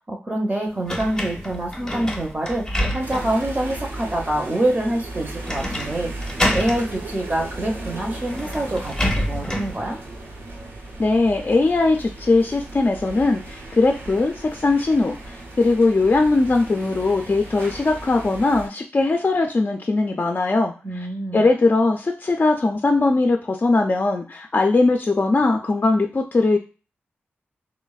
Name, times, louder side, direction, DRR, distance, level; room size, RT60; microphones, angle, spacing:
voice 1, 0.1-6.1 6.5-10.0 20.8-21.5, right 1 dB, 30° right, 1 dB, 0.6 m, -26 dB
sound 1, 0.9-3.4 4.0-4.1 5.5-5.9 6.2-6.8 7.9-8.0 8.3-9.8, equal, 15° left, 0.7 m, -26 dB
sound 2, 3.0-18.7, right 2 dB, 85° right, 0.8 m, -36 dB
voice 2, 11.0-21.1 21.3-26.6, left 3 dB, 40° left, 3 dB, 0.4 m, -20 dB
3.1 x 2.0 x 2.3 m, 0.33 s
cardioid pair, 45°, 4 cm